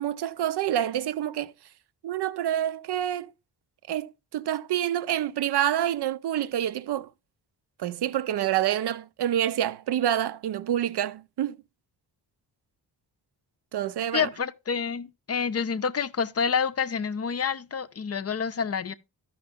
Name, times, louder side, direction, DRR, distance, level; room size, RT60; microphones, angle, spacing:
voice 1, 0.0-1.5 2.0-3.3 3.9-7.1 7.8-11.6 13.7-14.3, right 11 dB, 75° right, 0.6 m, -27 dB
voice 2, 14.1-18.9, left 6 dB, 40° left, 0.5 m, -28 dB
13.0 x 5.7 x 3.5 m
wide cardioid pair, 125°, 40 cm